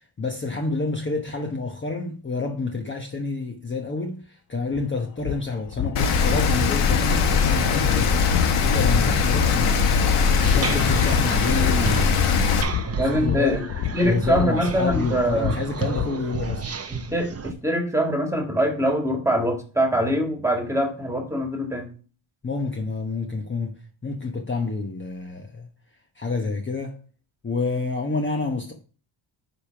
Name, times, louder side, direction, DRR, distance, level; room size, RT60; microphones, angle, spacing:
voice 1, 0.2-8.2 8.6-13.7 14.0-16.7 22.4-25.7 26.2-27.0 27.4-28.7, left 4 dB, 25° left, 1.0 m, -29 dB
sound 1, 4.7-4.8 5.2-16.6, left 11 dB, 45° left, 0.4 m, -30 dB
Rain, 6.0-12.6, left 5 dB, 90° left, 1.4 m, -21 dB
sound 2, 10.1-17.5, right 4 dB, 30° right, 0.9 m, -32 dB
voice 2, 13.0-13.6 13.9-15.6 17.1-21.9, equal, 5° right, 1.8 m, -23 dB
9.8 x 3.6 x 5.7 m
cardioid pair, 95°, 49 cm